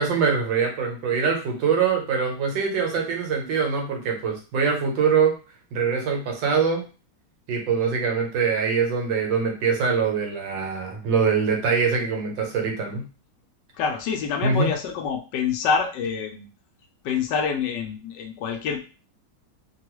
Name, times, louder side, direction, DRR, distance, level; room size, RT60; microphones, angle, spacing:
voice 1, 0.0-5.3 5.7-6.8 7.5-13.0 14.4-14.7, right 5 dB, 90° right, 1 dB, 1.5 m, -23 dB
voice 2, 13.7-16.5 17.0-18.8, left 6 dB, 75° left, 4 dB, 1.2 m, -26 dB
3.4 x 2.3 x 3.0 m, 0.34 s
omnidirectional pair, 1.9 m